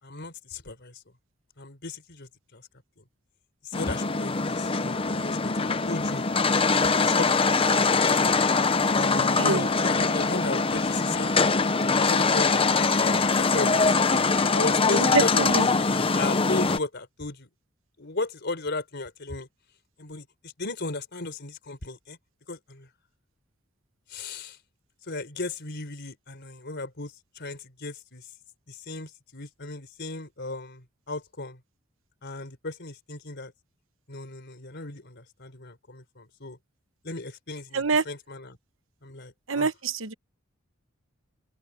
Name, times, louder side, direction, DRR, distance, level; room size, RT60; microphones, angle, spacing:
voice 1, 0.0-1.0 1.6-2.7 3.0-3.1 3.6-6.2 7.0-8.5 9.0-11.5 12.0-12.6 12.9-14.2 14.5-15.6 16.1-17.5 18.0-19.5 20.0-22.2 22.5-22.9 24.1-24.6 25.1-28.3 28.7-31.6 32.2-33.5 34.1-36.6 37.0-38.6 39.0-39.7, left 3 dB, 55° left, 4.3 m, -36 dB
sound 1, 3.7-16.8, left 4 dB, 30° left, 0.8 m, -23 dB
voice 2, 9.1-9.7 14.9-15.7 37.7-38.0 39.5-40.1, right 4 dB, 70° right, 1.1 m, -26 dB
open air
head